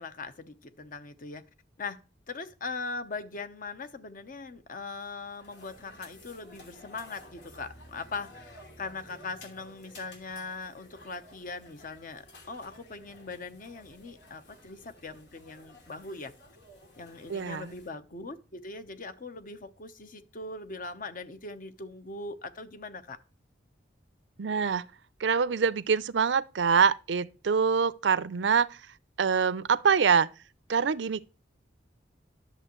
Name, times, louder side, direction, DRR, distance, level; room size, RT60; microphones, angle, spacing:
voice 1, 0.0-1.4 1.8-2.0 2.3-16.3 17.0-23.2, left 3 dB, 50° left, 0.9 m, -40 dB
sound 1, 4.9-17.9, left 1 dB, 85° left, 2.9 m, -53 dB
voice 2, 17.3-17.7 24.4-24.8 25.2-28.7 29.2-30.3 30.7-31.3, right 6 dB, 85° right, 0.5 m, -25 dB
11.0 x 7.0 x 3.0 m
head